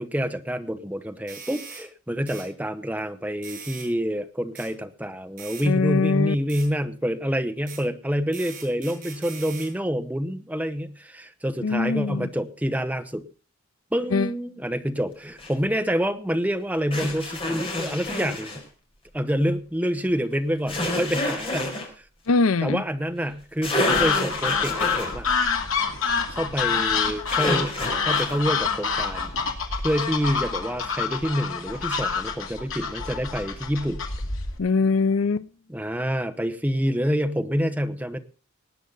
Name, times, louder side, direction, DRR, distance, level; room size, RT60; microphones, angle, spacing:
voice 1, 0.0-13.2 13.9-18.5 19.1-21.7 22.6-25.3 26.3-29.3 29.8-34.0 35.7-38.2, equal, 5° right, 0.9 m, -27 dB
sound 1, 1.3-1.8 2.3-2.5 3.4-3.9 4.6-4.7 5.4-5.7 6.5-6.7 7.7-7.8 8.3-9.7, right 6 dB, 40° right, 7.3 m, -41 dB
voice 2, 5.6-6.3 11.6-12.3 14.1-14.3 22.3-22.8 34.6-35.5, left 4 dB, 85° left, 0.6 m, -22 dB
sound 2, 15.4-15.5 16.9-18.6 20.7-21.9 23.3-23.4 23.6-25.2 27.3-28.4, left 1 dB, 25° left, 4.3 m, -28 dB
sound 3, 23.9-34.6, left 5 dB, 70° left, 2.7 m, -27 dB
19.0 x 9.4 x 3.9 m
head